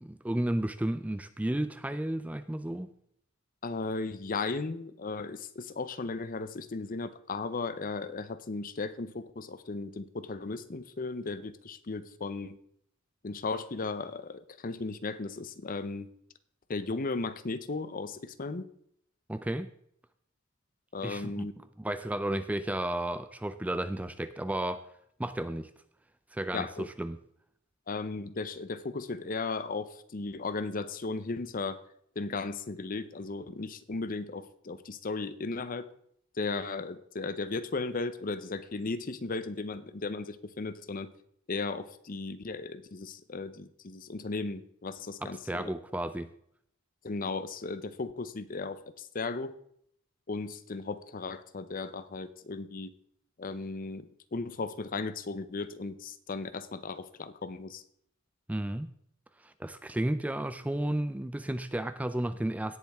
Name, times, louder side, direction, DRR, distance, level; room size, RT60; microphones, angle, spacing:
voice 1, 0.0-2.9 19.3-19.7 21.0-21.5 21.8-24.9 25.2-25.7 26.3-27.2 45.2-46.3 58.5-58.9 59.4-62.8, right 1 dB, 5° right, 12 dB, 0.3 m, -33 dB
voice 2, 3.6-12.6 13.2-16.1 16.7-18.7 20.9-21.5 26.5-26.9 27.9-31.8 32.2-35.9 36.4-41.1 41.5-45.7 47.0-49.6 50.3-52.9 53.4-57.8, left 3 dB, 40° left, 13 dB, 0.7 m, -36 dB
17.5 x 7.2 x 3.5 m, 0.69 s
head